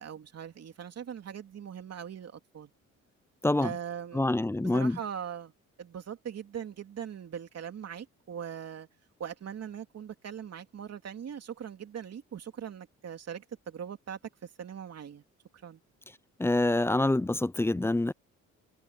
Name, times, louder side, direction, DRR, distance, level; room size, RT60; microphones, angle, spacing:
voice 1, 0.0-2.7 3.6-4.3 4.6-5.5 5.8-8.9 9.2-15.2 15.6-15.8, right 8 dB, 55° right, 3.1 m, -41 dB
voice 2, 3.4-3.8 4.1-5.0 16.4-18.1, left 2 dB, 10° left, 0.4 m, -26 dB
cardioid pair, 90°, 30 cm